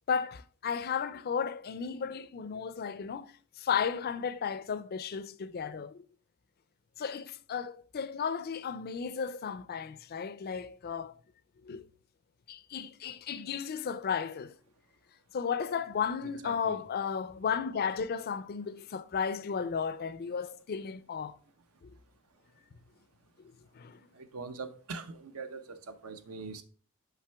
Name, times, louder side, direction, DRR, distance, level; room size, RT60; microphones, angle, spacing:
voice 1, 0.1-6.0 7.0-11.1 11.6-11.9 12.5-14.5 15.3-21.4 21.8-21.9 23.4-24.0, left 6 dB, 45° left, 0.4 m, -34 dB
voice 2, 16.4-16.8 24.1-26.6, right 4 dB, 75° right, 0.7 m, -42 dB
5.8 x 5.4 x 3.4 m
head